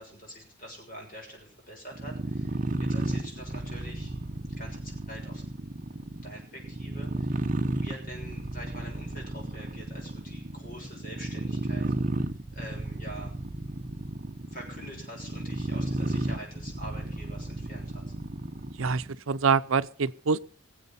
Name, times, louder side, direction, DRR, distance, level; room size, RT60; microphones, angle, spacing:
voice 1, 0.0-4.2 4.6-5.4 6.2-7.5 7.8-11.9 12.5-13.4 14.5-18.1, equal, 40° left, 6.5 m, -45 dB
sound 1, 1.9-19.2, right 1 dB, 40° right, 0.9 m, -33 dB
voice 2, 18.8-20.4, right 5 dB, 75° right, 0.6 m, -25 dB
23.0 x 7.8 x 5.5 m
head